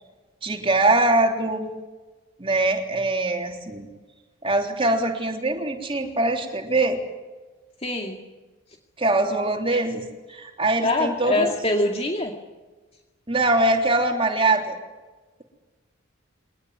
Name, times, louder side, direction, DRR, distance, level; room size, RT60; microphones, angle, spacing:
voice 1, 0.4-1.7 2.4-3.9 4.4-7.0 9.0-10.0 10.3-11.5 13.3-14.8, right 2 dB, 25° right, 2 dB, 3.4 m, -22 dB
voice 2, 7.8-8.2 10.8-12.3, left 2 dB, 30° left, 2 dB, 2.2 m, -24 dB
23.0 x 19.0 x 9.5 m, 1.2 s
head